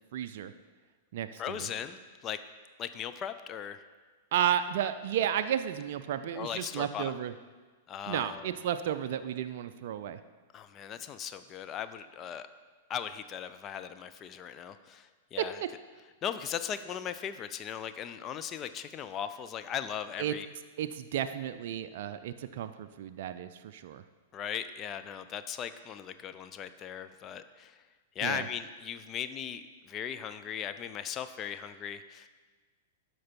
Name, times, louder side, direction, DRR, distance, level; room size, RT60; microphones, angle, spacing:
voice 1, 0.1-0.5 1.1-1.7 4.3-7.3 8.1-10.2 20.2-20.3 20.8-24.0 28.2-28.4, right 10 dB, 55° right, 10 dB, 0.3 m, -33 dB
voice 2, 1.4-2.4 2.8-3.8 6.3-7.1 7.9-8.5 10.5-12.5 12.9-15.6 16.2-20.5 24.3-27.8 28.2-32.3, left 9 dB, 30° left, 11 dB, 0.4 m, -38 dB
12.0 x 4.6 x 4.4 m, 1.4 s
figure-of-eight pair, 100°, 0 cm